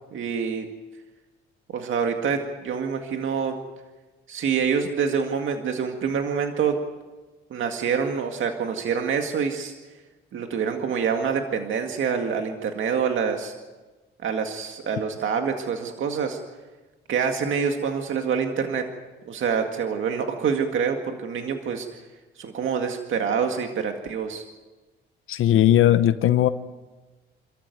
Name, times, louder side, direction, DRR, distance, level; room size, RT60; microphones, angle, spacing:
voice 1, 0.1-0.7 1.7-3.6 4.3-6.8 7.5-9.7 10.3-13.5 14.2-16.4 17.1-18.9 19.3-21.9 22.4-24.4, right 6 dB, 70° right, 4 dB, 2.0 m, -26 dB
voice 2, 25.3-26.5, left 12 dB, 75° left, 12 dB, 1.0 m, -18 dB
28.0 x 14.0 x 9.3 m, 1.3 s
cardioid pair, 90°, 21 cm